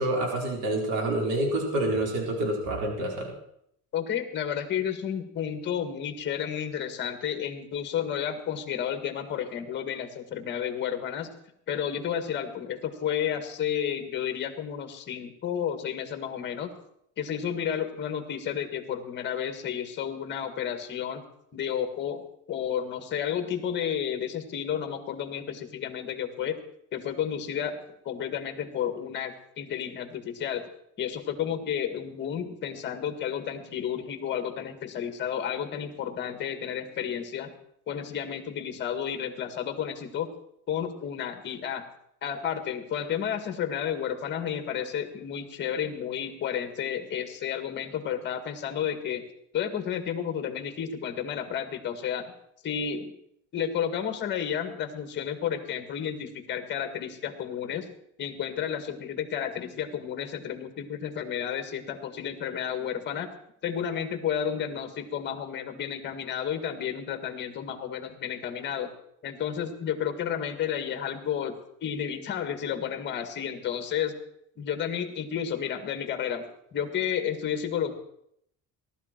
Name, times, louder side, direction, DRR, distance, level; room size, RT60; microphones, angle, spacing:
voice 1, 0.0-3.3, right 1 dB, 70° right, 0 dB, 4.3 m, -27 dB
voice 2, 3.9-11.3 11.7-16.7 17.2-21.2 21.5-26.6 26.9-27.8 28.1-30.7 31.0-37.5 37.9-40.3 40.7-41.8 42.2-49.2 49.5-52.3 52.6-53.1 53.5-57.9 58.2-63.3 63.6-68.9 69.2-71.5 71.8-74.1 74.6-76.4 76.7-77.9, left 8 dB, 35° left, 6 dB, 1.8 m, -31 dB
18.0 x 12.5 x 4.5 m, 0.72 s
cardioid pair, 175°, 31 cm